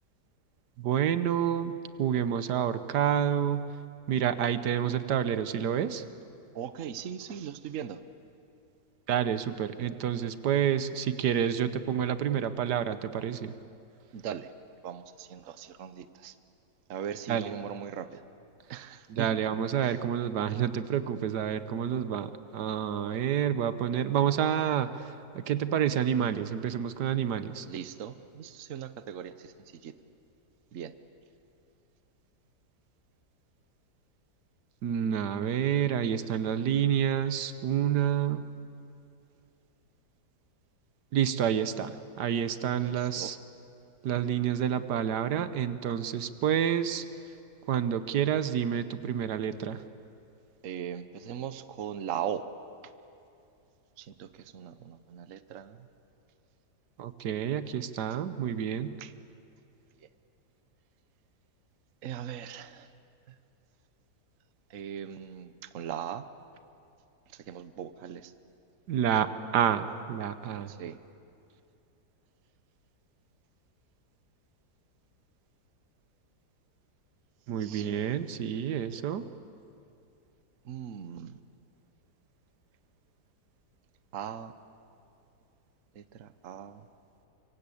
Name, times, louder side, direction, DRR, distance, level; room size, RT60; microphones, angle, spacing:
voice 1, 0.8-1.7 2.0-3.6 4.1-6.0 9.1-13.5 17.3-17.5 19.1-24.9 25.3-27.6 34.8-38.5 41.1-41.9 42.2-43.4 44.0-47.0 47.7-49.8 57.0-59.0 68.9-69.3 69.5-70.7 77.5-79.2, right 9 dB, 85° right, 12 dB, 1.5 m, -28 dB
voice 2, 6.5-8.0 14.1-14.5 14.8-16.3 16.9-18.2 18.7-19.3 19.8-20.0 27.7-29.5 29.8-29.9 30.7-30.9 35.8-36.2 42.8-43.3 50.6-52.4 54.0-54.3 54.5-55.8 59.0-59.1 62.0-62.9 64.7-66.2 67.5-68.3 70.7-70.9 77.6-78.2 80.6-81.3 84.1-84.5 85.9-86.8, right 9 dB, 55° right, 12 dB, 1.2 m, -39 dB
25.0 x 24.0 x 8.5 m, 2.6 s
omnidirectional pair, 1.7 m